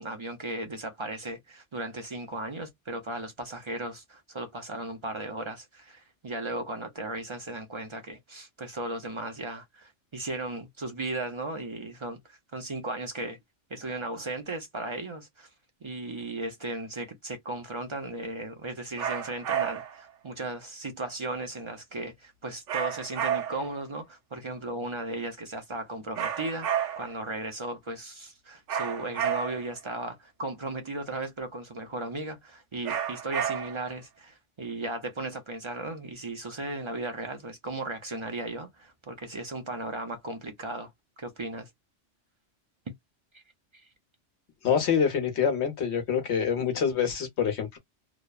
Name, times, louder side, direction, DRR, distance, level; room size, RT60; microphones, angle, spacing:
voice 1, 0.0-13.4 13.7-15.5 15.8-26.7 27.0-40.9 41.2-41.7 42.9-43.0 43.3-43.4 43.7-43.9, right 2 dB, 45° right, 0.4 m, -36 dB
sound 1, 19.0-20.0 22.7-23.8 26.1-27.2 28.7-29.8 32.8-33.9, right 9 dB, 85° right, 1.0 m, -31 dB
voice 2, 44.6-47.8, left 7 dB, 65° left, 1.1 m, -26 dB
2.9 x 2.0 x 2.3 m
omnidirectional pair, 1.2 m